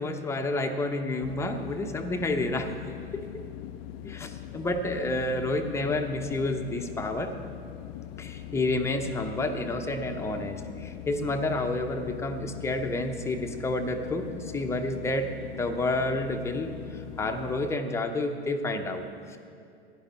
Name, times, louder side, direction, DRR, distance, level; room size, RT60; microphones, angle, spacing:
voice 1, 0.0-2.8 3.1-3.3 4.0-7.4 8.2-19.4, left 2 dB, 10° left, 5 dB, 0.8 m, -30 dB
sound 1, 1.2-17.8, left 12 dB, 30° left, 0.4 m, -41 dB
15.5 x 10.5 x 4.3 m, 2.3 s
figure-of-eight pair, 95°, 33 cm